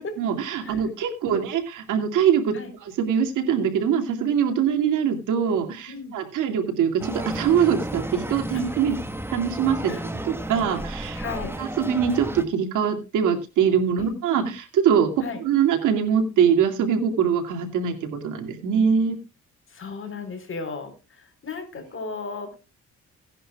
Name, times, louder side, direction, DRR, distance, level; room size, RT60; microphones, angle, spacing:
voice 1, 0.2-2.6 2.8-9.0 9.3-11.2 11.6-15.1 15.4-19.2, right 7 dB, 85° right, 5 dB, 2.4 m, -23 dB
sound 1, 7.0-12.4, right 1 dB, 10° right, 1.3 m, -33 dB
voice 2, 11.1-11.5 14.0-14.2 15.2-15.4 19.7-22.6, left 4 dB, 45° left, 7 dB, 4.1 m, -35 dB
17.0 x 10.5 x 2.3 m, 0.29 s
cardioid pair, 90°, 30 cm